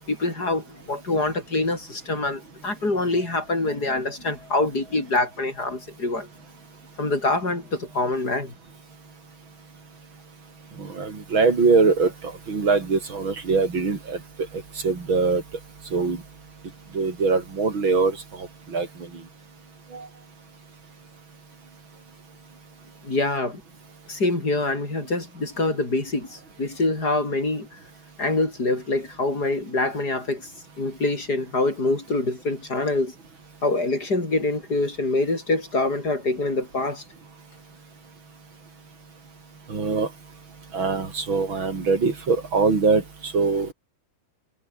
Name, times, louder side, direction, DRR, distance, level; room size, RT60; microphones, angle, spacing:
voice 1, 0.1-6.3 7.0-8.5 23.0-23.6 24.1-27.7 28.2-30.5 30.8-33.1 33.6-37.0, left 2 dB, 50° left, 6.3 m, -25 dB
voice 2, 10.8-14.2 14.8-15.4 15.9-16.2 16.9-18.9 19.9-20.1 39.7-40.1 40.7-43.7, right 4 dB, 85° right, 4.7 m, -22 dB
omnidirectional pair, 2.1 m